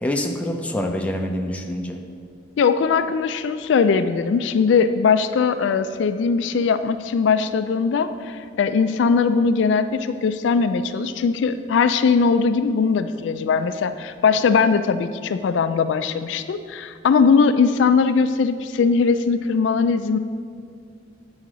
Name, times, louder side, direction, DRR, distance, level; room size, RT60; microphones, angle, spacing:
voice 1, 0.0-2.0, left 1 dB, 5° left, 2 dB, 0.5 m, -26 dB
voice 2, 2.6-20.2, left 5 dB, 70° left, 11 dB, 0.3 m, -20 dB
8.2 x 4.8 x 6.1 m, 2.2 s
head